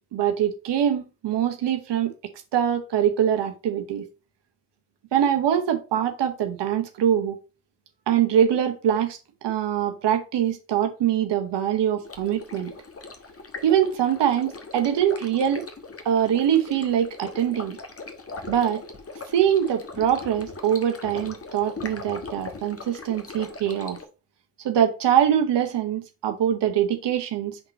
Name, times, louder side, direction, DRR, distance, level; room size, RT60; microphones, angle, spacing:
voice 1, 0.1-2.1 2.5-4.0 5.1-7.4 8.1-12.7 13.6-15.6 16.0-17.8 18.5-18.8 19.3-24.0 24.6-27.6, right 9 dB, 70° right, 1.0 m, -23 dB
Stream, 12.0-24.0, left 3 dB, 30° left, 1.4 m, -40 dB
5.9 x 3.9 x 4.1 m
hypercardioid pair, 45°, 44 cm